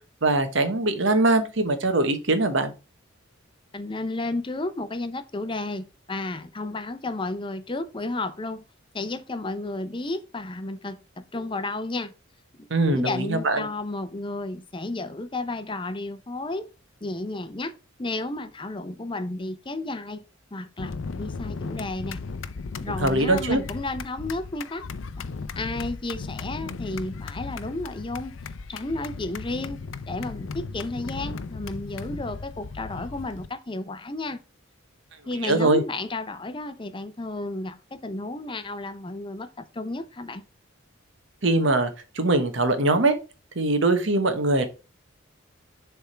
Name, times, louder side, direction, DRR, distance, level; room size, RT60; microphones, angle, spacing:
voice 1, 0.2-2.7 12.7-13.7 23.0-23.6 35.4-35.8 41.4-43.2 43.5-44.7, right 2 dB, 65° right, 1.1 m, -22 dB
voice 2, 3.7-8.6 8.9-12.1 12.6-16.7 17.0-17.7 18.0-20.2 20.5-22.2 22.8-24.8 25.6-28.4 28.7-29.8 30.1-34.4 35.3-40.4, left 2 dB, 25° left, 0.6 m, -32 dB
sound 1, 20.8-33.5, left 4 dB, 70° left, 0.5 m, -36 dB
7.0 x 3.6 x 4.4 m
head